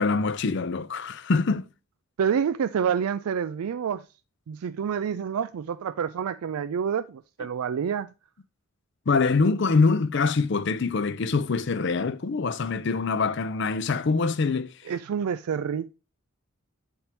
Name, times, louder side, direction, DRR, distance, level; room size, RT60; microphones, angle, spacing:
voice 1, 0.0-1.7 9.1-14.7, left 4 dB, 50° left, 0.5 m, -24 dB
voice 2, 2.2-4.0 4.5-8.1 14.9-15.9, right 7 dB, 80° right, 0.4 m, -28 dB
8.2 x 4.4 x 3.3 m
head